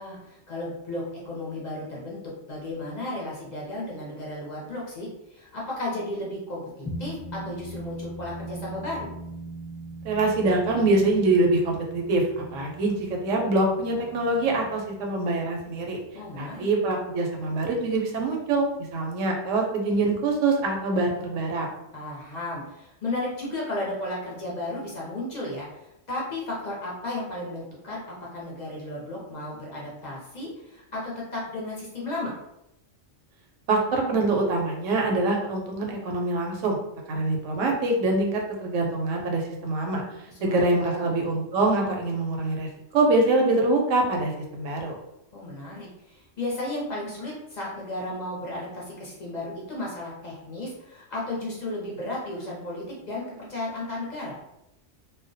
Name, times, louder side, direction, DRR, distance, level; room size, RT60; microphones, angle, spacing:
voice 1, 0.0-2.2 2.5-9.1 16.1-16.7 21.9-28.0 28.3-32.3 40.5-41.2 45.3-54.4, left 1 dB, 50° left, -4 dB, 0.6 m, -34 dB
sound 1, 6.9-17.5, right 1 dB, 10° left, 0.8 m, -41 dB
voice 2, 10.0-16.0 16.4-21.7 33.7-36.8 37.1-40.0 40.4-44.9, right 2 dB, 90° right, 1 dB, 1.0 m, -24 dB
2.3 x 2.1 x 2.5 m, 0.85 s
omnidirectional pair, 1.3 m